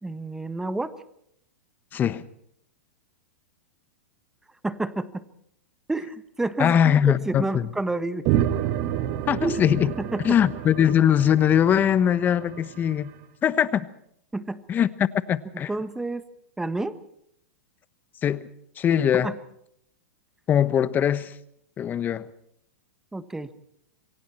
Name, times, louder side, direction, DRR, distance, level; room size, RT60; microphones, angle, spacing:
voice 1, 0.0-0.9 4.6-5.2 5.9-8.4 9.4-9.6 10.0-10.4 14.3-14.6 15.5-16.2 16.6-17.0 19.1-19.4 23.1-23.5, right 2 dB, 5° right, 1.4 m, -29 dB
voice 2, 1.9-2.2 6.6-7.7 9.3-9.9 10.2-13.1 13.4-13.9 14.7-14.9 15.3-15.7 18.2-18.5 18.8-19.3 20.5-21.3 21.8-22.3, left 9 dB, 25° left, 1.1 m, -21 dB
sound 1, 8.3-12.9, right 12 dB, 45° right, 1.9 m, -29 dB
27.5 x 23.5 x 4.4 m
hypercardioid pair, 120°, 7 cm